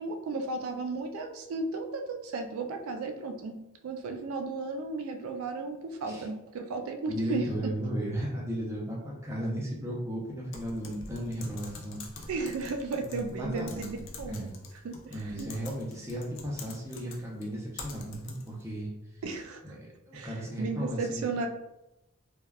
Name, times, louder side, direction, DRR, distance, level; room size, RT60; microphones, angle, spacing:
voice 1, 0.0-3.6 3.8-7.5 12.3-14.5 14.8-15.5 19.2-19.8 20.1-21.5, right 3 dB, 70° right, 5 dB, 0.3 m, -34 dB
voice 2, 7.1-12.0 13.0-14.5 15.1-18.9 19.6-21.3, equal, 10° right, -4 dB, 0.5 m, -35 dB
Typing, 10.5-18.6, left 3 dB, 55° left, 0.4 m, -46 dB
3.3 x 2.2 x 2.2 m, 0.91 s
head